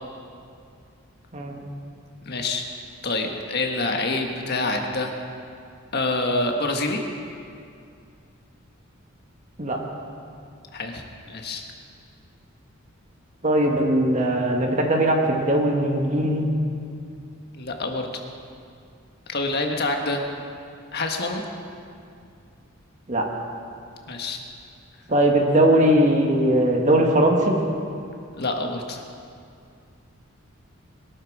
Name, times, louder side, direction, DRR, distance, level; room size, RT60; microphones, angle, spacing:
voice 1, 2.2-2.6 3.0-5.1 5.9-7.0 10.7-11.6 17.5-18.2 19.3-20.2 20.9-21.4 24.1-24.4 28.4-29.0, left 2 dB, 50° left, 3 dB, 1.5 m, -26 dB
voice 2, 13.4-16.5 23.1-23.2 25.1-27.5, right 1 dB, 35° right, 1 dB, 1.8 m, -20 dB
21.5 x 12.5 x 4.9 m, 2.4 s
head